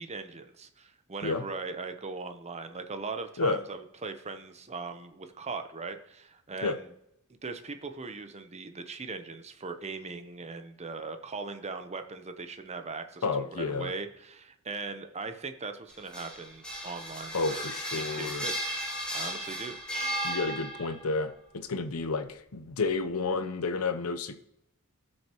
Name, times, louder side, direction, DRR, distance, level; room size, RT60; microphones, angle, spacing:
voice 1, 0.0-6.9 7.4-18.8 19.1-19.8, right 4 dB, 30° right, 8 dB, 0.8 m, -39 dB
voice 2, 13.2-13.9 17.3-18.5 20.2-24.3, left 3 dB, 75° left, 9 dB, 0.8 m, -31 dB
sound 1, 15.9-21.1, equal, 5° left, 2.1 m, -35 dB
17.0 x 6.4 x 3.0 m, 0.80 s
head